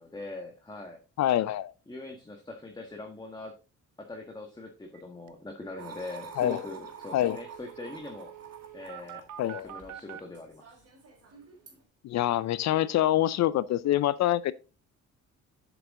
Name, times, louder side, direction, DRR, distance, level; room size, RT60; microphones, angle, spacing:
voice 1, 0.0-1.0 1.9-3.5 4.0-8.3 8.7-10.8, left 2 dB, 15° left, 1.6 m, -42 dB
voice 2, 1.2-1.7 6.4-6.6 7.1-7.4 9.4-9.7 12.0-14.5, left 13 dB, 65° left, 0.5 m, -25 dB
sound 1, 4.9-5.0 5.3-5.4 5.6-10.2, right 12 dB, 75° right, 0.8 m, -47 dB
Coffee Maker, 5.8-11.8, right 5 dB, 55° right, 3.9 m, -48 dB
8.1 x 7.0 x 3.7 m
cardioid pair, 90°, 30 cm